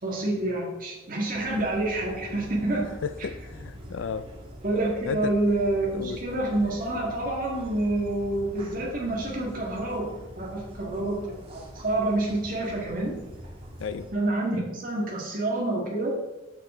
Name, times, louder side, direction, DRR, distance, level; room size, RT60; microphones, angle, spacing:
voice 1, 0.0-2.9 4.6-10.1 10.4-13.2 14.1-16.1, right 2 dB, 45° right, 2.1 m, -28 dB
sound 1, 1.3-14.1, equal, 30° right, 1.7 m, -44 dB
voice 2, 3.0-4.3 5.0-5.4 5.9-6.2 13.8-14.1, left 6 dB, 80° left, 0.4 m, -33 dB
7.2 x 6.9 x 3.8 m
head